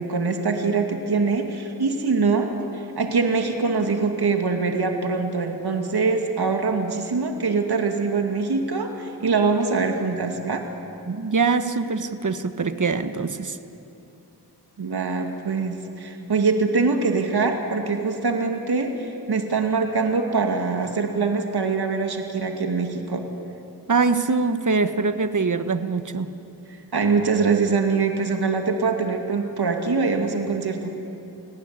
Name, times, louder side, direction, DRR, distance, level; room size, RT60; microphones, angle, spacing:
voice 1, 0.0-10.6 14.8-23.2 26.9-31.0, right 4 dB, 65° right, 4 dB, 2.5 m, -23 dB
voice 2, 11.1-13.6 23.9-26.3, right 4 dB, 45° right, 10 dB, 1.4 m, -23 dB
30.0 x 19.0 x 9.7 m, 2.8 s
cardioid pair, 65°, 41 cm